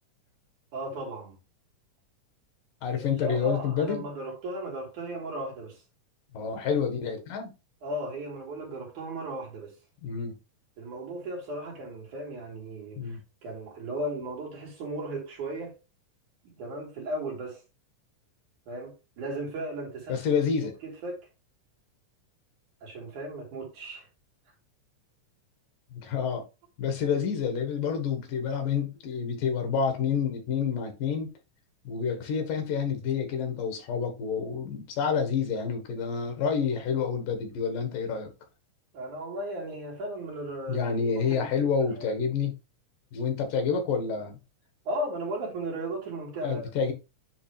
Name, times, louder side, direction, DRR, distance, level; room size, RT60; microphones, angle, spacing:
voice 1, 0.7-1.4 2.9-5.8 7.8-9.7 10.8-15.7 16.4-17.6 18.7-20.2 20.8-21.3 22.8-24.1 38.9-42.1 44.9-46.9, right 1 dB, 70° right, 4.2 m, -36 dB
voice 2, 2.8-4.1 6.3-7.5 10.0-10.4 13.0-13.2 20.1-20.7 25.9-26.4 26.8-31.3 31.8-38.3 40.7-42.5 43.1-44.4 46.4-46.9, left 6 dB, 90° left, 3.2 m, -28 dB
9.7 x 3.3 x 3.3 m
omnidirectional pair, 3.7 m